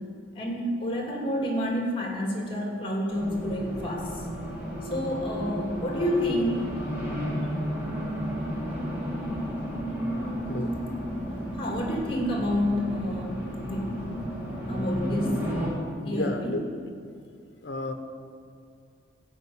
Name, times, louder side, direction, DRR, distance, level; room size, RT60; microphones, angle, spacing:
voice 1, 0.3-4.3 4.9-6.7 11.6-14.2 14.7-15.5 16.0-16.6, left 1 dB, 30° left, 0 dB, 2.5 m, -29 dB
Race car auto racing, 3.1-15.7, equal, 10° right, 2.9 m, -33 dB
voice 2, 10.5-10.8 16.0-16.6 17.6-17.9, left 1 dB, 70° left, 6 dB, 1.1 m, -32 dB
14.5 x 5.3 x 8.7 m, 2.3 s
head